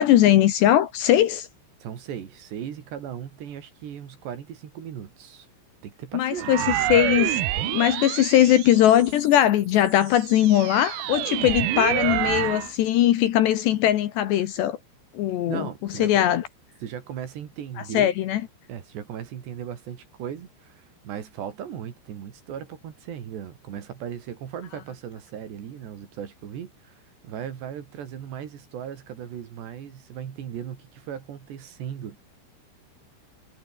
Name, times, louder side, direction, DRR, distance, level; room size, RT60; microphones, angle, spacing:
voice 1, 0.0-1.5 6.1-14.8 15.1-15.7 16.0-16.4 17.9-18.4, left 12 dB, 70° left, 3.1 m, -20 dB
voice 2, 1.8-5.5 5.8-6.5 15.5-16.2 16.8-18.1 18.7-32.2, right 9 dB, 60° right, 4.5 m, -37 dB
sound 1, 6.4-9.3 9.9-12.7, right 14 dB, 75° right, 2.3 m, -27 dB
omnidirectional pair, 5.9 m